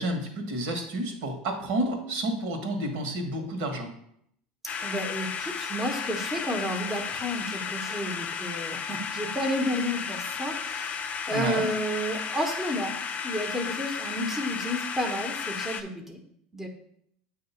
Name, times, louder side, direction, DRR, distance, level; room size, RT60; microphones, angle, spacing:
voice 1, 0.0-3.9 11.3-11.7, right 1 dB, 70° right, 4 dB, 1.6 m, -30 dB
sound 1, 4.7-15.8, left 6 dB, 35° left, 0.5 m, -34 dB
voice 2, 4.8-13.0 13.2-16.2 16.5-16.7, equal, 5° right, 2 dB, 1.0 m, -31 dB
7.6 x 2.9 x 5.6 m, 0.70 s
supercardioid pair, 105°, 4 cm